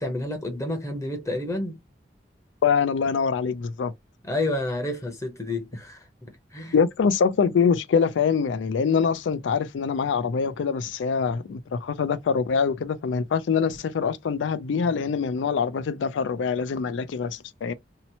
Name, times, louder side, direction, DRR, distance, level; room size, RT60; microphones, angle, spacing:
voice 1, 0.0-1.8 4.2-6.8, left 1 dB, 15° left, 0.7 m, -30 dB
voice 2, 2.6-3.9 6.7-17.7, left 6 dB, 90° left, 0.4 m, -24 dB
2.8 x 2.0 x 2.7 m
head